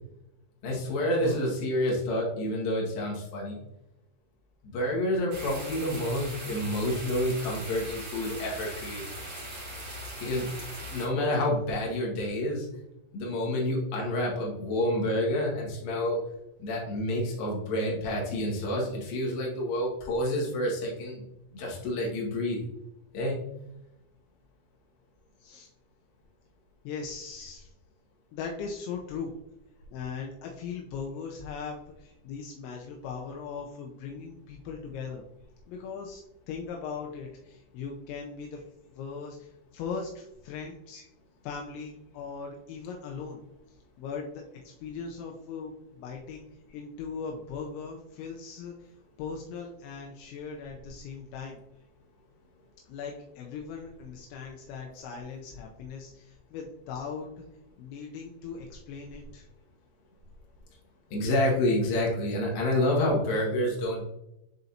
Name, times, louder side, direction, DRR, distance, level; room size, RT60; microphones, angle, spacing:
voice 1, 0.6-3.6 4.7-9.0 10.2-10.5 10.9-12.7 13.1-16.2 16.6-21.2 21.5-22.6 23.1-23.4 61.1-64.0, left 1 dB, 60° left, -2 dB, 2.9 m, -28 dB
sound 1, 5.3-11.1, right 1 dB, 40° right, 1.6 m, -40 dB
voice 2, 26.8-27.7 28.3-29.3 29.9-35.2 35.7-36.2 36.5-38.6 38.9-41.0 41.4-43.4 44.0-46.5 46.7-48.9 49.2-51.6 52.9-57.4 57.8-59.4, left 5 dB, 85° left, 0 dB, 2.7 m, -39 dB
10.5 x 4.0 x 2.8 m, 0.87 s
omnidirectional pair, 5.9 m